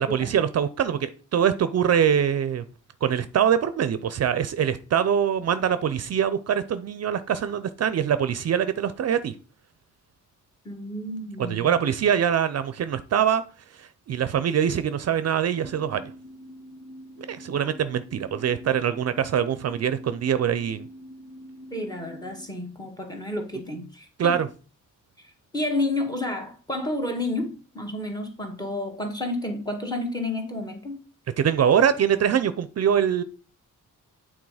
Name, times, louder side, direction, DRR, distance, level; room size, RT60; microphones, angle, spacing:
voice 1, 0.0-2.6 3.0-9.3 11.4-13.4 13.8-16.0 17.3-20.9 24.2-24.5 31.4-33.2, right 8 dB, 55° right, 0.5 m, -23 dB
voice 2, 10.6-11.9 21.7-24.3 25.5-31.0, left 2 dB, 10° left, 1.4 m, -30 dB
sound 1, 15.6-22.5, equal, 40° left, 1.9 m, -45 dB
8.5 x 3.7 x 4.8 m
wide cardioid pair, 160°, 31 cm